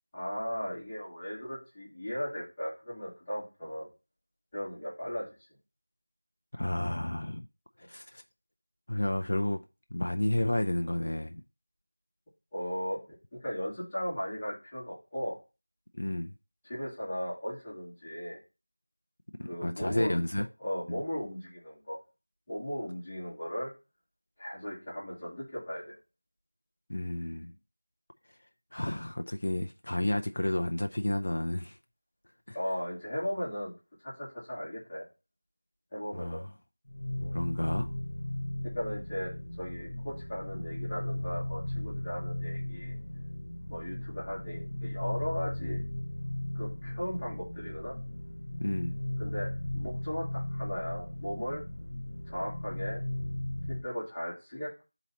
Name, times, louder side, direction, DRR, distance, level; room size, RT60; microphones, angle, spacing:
voice 1, 0.1-3.9 4.5-5.3 12.5-15.4 16.6-18.4 19.5-20.2 20.6-22.0 22.5-23.7 24.4-26.0 32.5-33.7 34.0-35.0 35.9-36.4 37.2-37.4 38.6-39.3 39.6-43.0 43.7-45.8 46.5-48.0 49.2-51.6 52.3-53.0 53.7-54.8, equal, 10° left, 1.9 m, -37 dB
voice 2, 6.5-7.5 7.9-8.2 8.9-9.6 9.9-11.4 16.0-16.3 19.4-20.5 20.9-21.0 26.9-27.5 28.7-31.8 32.5-32.6 36.1-36.5 37.3-37.9 48.6-49.0, left 1 dB, 50° left, 0.4 m, -31 dB
sound 1, 36.9-53.9, left 1 dB, 65° left, 1.1 m, -36 dB
10.5 x 4.0 x 2.8 m
figure-of-eight pair, 180°, 0 cm